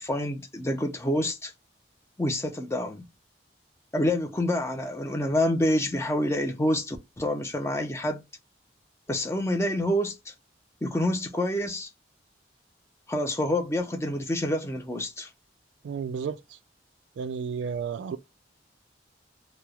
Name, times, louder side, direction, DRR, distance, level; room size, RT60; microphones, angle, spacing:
voice 1, 0.0-1.5 2.2-3.1 3.9-8.2 9.1-10.3 10.8-11.9 13.1-15.3, left 1 dB, 15° left, 0.5 m, -27 dB
voice 2, 15.8-16.6 17.2-18.2, right 6 dB, 75° right, 0.3 m, -32 dB
3.0 x 2.0 x 2.3 m
head